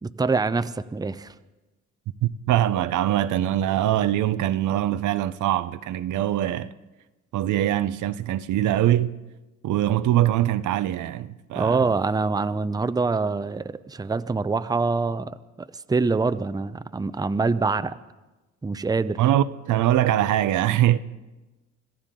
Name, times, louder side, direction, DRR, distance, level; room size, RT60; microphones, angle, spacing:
voice 1, 0.0-1.3 11.5-15.4 15.7-17.9 18.6-19.2, right 4 dB, 15° right, 0.6 m, -25 dB
voice 2, 2.2-6.7 7.3-9.1 9.6-11.8 19.2-21.0, right 12 dB, 75° right, 0.7 m, -23 dB
26.5 x 14.5 x 3.8 m
cardioid pair, 90°, 30 cm